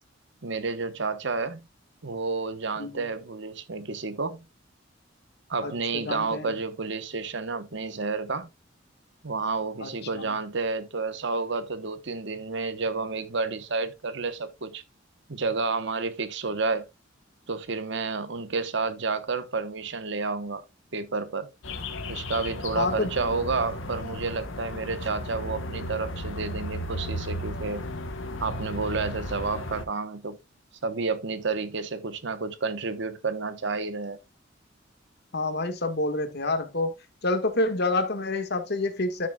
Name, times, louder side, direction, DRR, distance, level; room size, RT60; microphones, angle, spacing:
voice 1, 0.4-1.6 2.0-4.4 5.5-8.5 9.2-14.8 15.3-16.9 17.5-20.6 20.9-21.5 22.1-27.8 28.4-30.4 30.8-34.2, right 4 dB, 65° right, 1.0 m, -30 dB
voice 2, 5.6-6.5 9.8-10.3 22.8-23.1 35.3-36.9 37.2-39.3, left 2 dB, 60° left, 1.6 m, -28 dB
sound 1, 21.6-29.8, left 1 dB, 80° left, 1.2 m, -35 dB
13.0 x 6.2 x 2.3 m
head